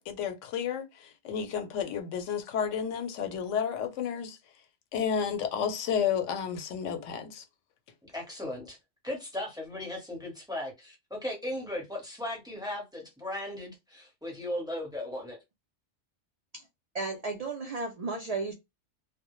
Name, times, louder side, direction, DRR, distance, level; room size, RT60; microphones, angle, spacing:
voice 1, 0.0-4.4 4.9-7.4, left 7 dB, 90° left, 0.9 m, -31 dB
voice 2, 8.1-8.8 9.0-15.4, left 1 dB, 5° right, 0.7 m, -37 dB
voice 3, 16.9-18.5, right 3 dB, 75° right, 0.3 m, -34 dB
2.1 x 2.0 x 2.9 m
omnidirectional pair, 1.2 m